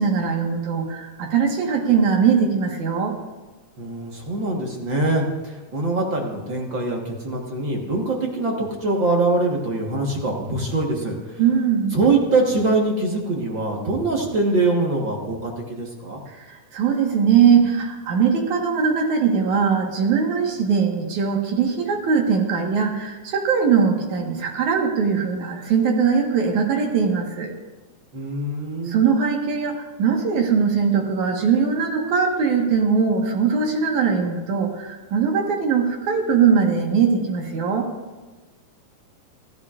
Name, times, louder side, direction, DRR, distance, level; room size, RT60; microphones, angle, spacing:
voice 1, 0.0-3.2 11.4-12.0 16.3-27.5 28.8-37.9, right 6 dB, 70° right, 2 dB, 2.7 m, -21 dB
voice 2, 3.8-11.4 11.9-16.2 28.1-29.0, right 2 dB, 50° right, 0 dB, 1.5 m, -23 dB
25.5 x 12.0 x 2.5 m, 1.3 s
omnidirectional pair, 3.7 m